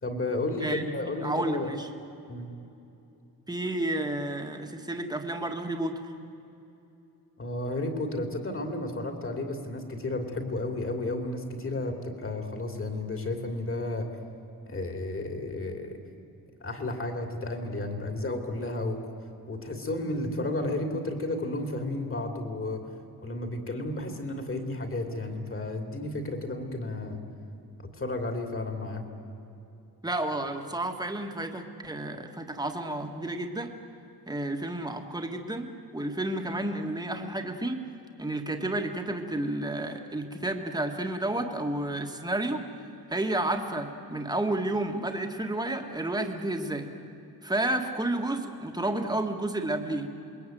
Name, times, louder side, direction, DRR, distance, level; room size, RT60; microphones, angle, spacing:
voice 1, 0.0-1.7 2.3-2.5 7.4-14.1 14.7-16.0 16.6-19.0 19.5-22.9 23.2-27.2 27.8-29.0, left 2 dB, 35° left, 4 dB, 3.0 m, -32 dB
voice 2, 0.6-0.9 1.2-1.9 3.5-5.9 30.0-33.7 34.3-37.8 38.2-42.6 43.1-46.9 47.4-50.1, right 1 dB, 10° right, 4 dB, 1.8 m, -31 dB
27.5 x 22.0 x 9.3 m, 2.8 s
wide cardioid pair, 160°, 38 cm